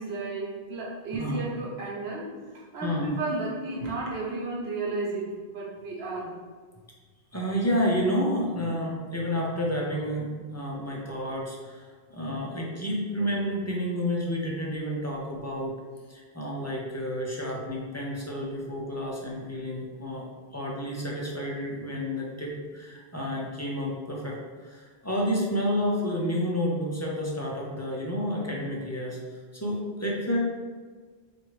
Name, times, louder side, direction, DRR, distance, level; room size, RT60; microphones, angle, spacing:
voice 1, 0.0-2.2 2.5-6.3, right 2 dB, 90° right, -4 dB, 1.2 m, -33 dB
voice 2, 1.1-1.5 2.8-3.1 7.3-15.8 16.1-20.3 20.5-24.4 24.6-30.4, equal, 25° left, -3 dB, 0.4 m, -30 dB
4.5 x 2.5 x 3.1 m, 1.5 s
omnidirectional pair, 1.0 m